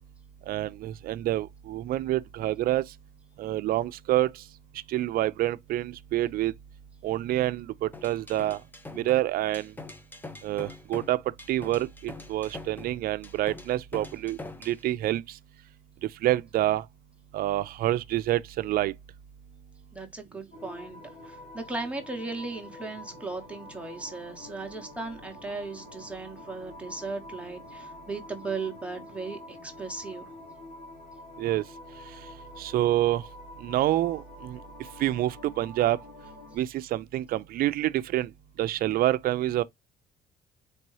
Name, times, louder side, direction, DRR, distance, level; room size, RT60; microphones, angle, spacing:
voice 1, 0.5-2.8 3.4-4.3 4.9-6.5 7.0-8.6 8.9-9.7 10.4-11.2 11.5-14.4 14.6-15.2 16.2-16.8 17.3-18.9 31.4-31.6 32.6-33.2 33.6-34.6 35.0-36.0 36.6-38.3 38.6-39.6, right 14 dB, 60° right, 0.4 m, -27 dB
sound 1, 7.9-14.8, left 3 dB, 10° left, 0.6 m, -43 dB
voice 2, 19.9-21.0 21.2-30.3, right 3 dB, 5° right, 0.9 m, -37 dB
sound 2, 20.5-36.6, left 2 dB, 85° left, 1.9 m, -47 dB
4.5 x 2.7 x 3.1 m
cardioid pair, 110°, 17 cm